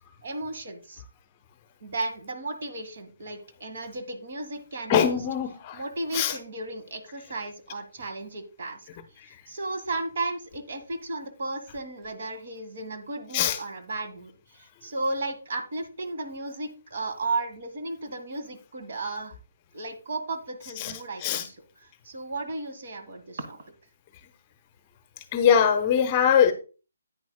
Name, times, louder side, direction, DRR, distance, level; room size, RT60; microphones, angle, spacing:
voice 1, 0.2-1.0 1.8-5.2 5.7-8.9 9.2-19.3 19.7-23.6, right 2 dB, 45° right, 1.7 m, -34 dB
voice 2, 4.9-5.8 6.1-6.4 13.3-13.6 20.8-20.9 21.2-21.4 25.3-26.5, left 8 dB, 25° left, 0.8 m, -22 dB
10.5 x 9.3 x 2.2 m
figure-of-eight pair, 140°, 0 cm